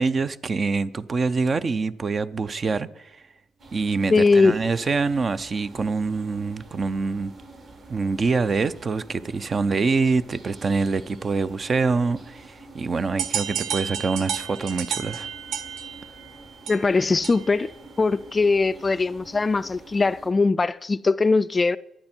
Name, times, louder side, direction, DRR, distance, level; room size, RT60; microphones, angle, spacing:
voice 1, 0.0-3.1 3.7-7.3 7.9-15.3, right 4 dB, 40° right, 0.7 m, -25 dB
sound 1, 3.6-20.3, right 2 dB, 55° right, 5.8 m, -47 dB
voice 2, 4.1-4.6 16.7-17.7 18.0-21.8, left 3 dB, 25° left, 0.4 m, -20 dB
sound 2, 13.2-17.7, right 8 dB, 80° right, 0.9 m, -32 dB
23.0 x 8.7 x 4.5 m
cardioid pair, 90°, 0 cm